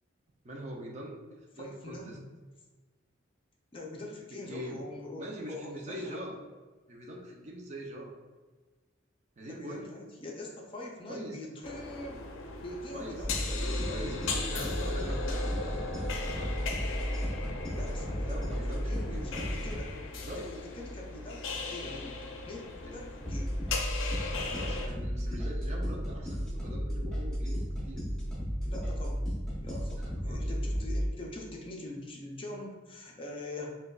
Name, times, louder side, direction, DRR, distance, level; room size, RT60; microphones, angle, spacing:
voice 1, 0.4-1.2 1.5-2.1 4.5-4.8 5.2-6.4 6.9-8.1 9.4-9.8 11.1-11.4 12.9-13.2 13.9-16.5 18.2-19.2 20.1-20.4 22.8-23.0 24.4-27.6 27.8-28.0 30.0-30.6, equal, 35° right, 0 dB, 0.5 m, -43 dB
voice 2, 1.6-2.3 3.7-6.2 9.5-12.3 12.6-13.9 17.8-19.9 20.3-23.6 28.5-29.2 29.6-33.7, left 1 dB, 25° left, -1 dB, 0.4 m, -43 dB
sound 1, 11.6-24.9, left 4 dB, 80° left, 0.5 m, -38 dB
sound 2, 13.2-19.8 23.2-31.1, equal, 5° left, 0.8 m, -34 dB
5.0 x 2.2 x 2.3 m, 1.3 s
head